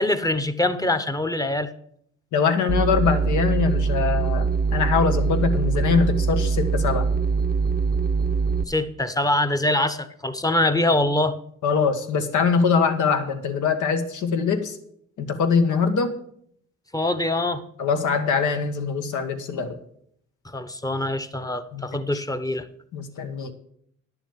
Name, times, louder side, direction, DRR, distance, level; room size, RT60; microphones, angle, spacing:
voice 1, 0.0-1.7 8.7-11.4 16.9-17.6 20.4-22.7, left 1 dB, 10° left, 10 dB, 0.9 m, -24 dB
voice 2, 2.3-7.1 11.6-14.8 15.2-16.2 17.8-19.8 21.7-22.0 22.9-23.5, left 5 dB, 80° left, 8 dB, 1.4 m, -23 dB
sound 1, 2.7-8.6, right 5 dB, 30° right, 0.6 m, -23 dB
10.5 x 7.0 x 7.2 m, 0.69 s
cardioid pair, 90°, 30 cm